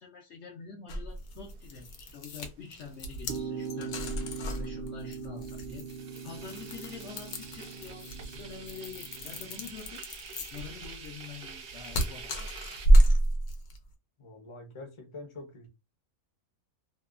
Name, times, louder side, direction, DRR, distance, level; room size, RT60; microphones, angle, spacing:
voice 1, 0.0-12.8, left 6 dB, 60° left, 0.8 m, -46 dB
sound 1, 0.9-13.8, right 1 dB, 85° left, 1.1 m, -29 dB
sound 2, 1.1-12.9, right 5 dB, 60° right, 0.8 m, -48 dB
sound 3, 3.3-9.7, right 6 dB, 85° right, 0.4 m, -41 dB
voice 2, 14.2-15.7, left 2 dB, 30° left, 0.6 m, -45 dB
2.8 x 2.2 x 2.3 m
omnidirectional pair, 1.5 m